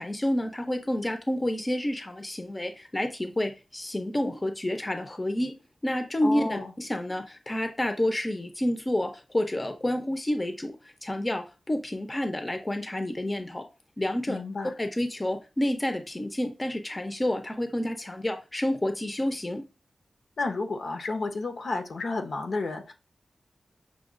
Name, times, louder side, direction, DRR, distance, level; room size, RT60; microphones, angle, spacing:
voice 1, 0.0-5.6 5.8-10.7 11.0-13.6 14.0-14.4 14.8-19.6, left 1 dB, 20° left, 0.5 m, -29 dB
voice 2, 6.2-6.7 14.3-14.7 20.4-22.9, left 3 dB, 70° left, 0.7 m, -31 dB
6.0 x 2.2 x 2.5 m
wide cardioid pair, 120°, 0 cm